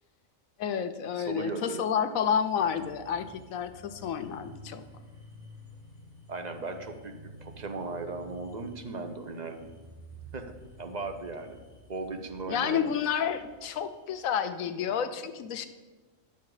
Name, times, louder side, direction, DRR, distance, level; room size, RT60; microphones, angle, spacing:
voice 1, 0.6-4.8 12.5-15.7, left 8 dB, 85° left, 10 dB, 1.1 m, -30 dB
voice 2, 1.2-1.8 6.3-7.1 7.4-9.6 10.3-10.5 10.8-11.6 11.9-12.8, right 3 dB, 35° right, 6 dB, 0.8 m, -37 dB
sound 1, 2.1-14.2, right 1 dB, 80° right, 4.0 m, -51 dB
11.0 x 6.9 x 4.8 m, 1.2 s
omnidirectional pair, 1.4 m